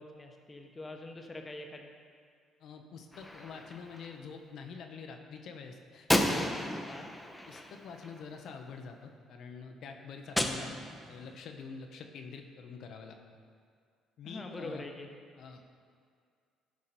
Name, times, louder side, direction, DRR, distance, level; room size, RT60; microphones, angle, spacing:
voice 1, 0.0-1.9 6.9-7.1 14.2-15.1, left 2 dB, 25° left, 3 dB, 1.1 m, -44 dB
voice 2, 2.6-6.5 7.4-13.2 14.2-14.8 15.4-15.6, left 5 dB, 65° left, 4 dB, 0.9 m, -46 dB
Gunshot gunfire, 3.1-4.1 6.1-8.5 10.4-11.3, left 1 dB, 10° left, 0.9 m, -33 dB
12.5 x 4.9 x 4.3 m, 2.1 s
supercardioid pair, 70°, 0 cm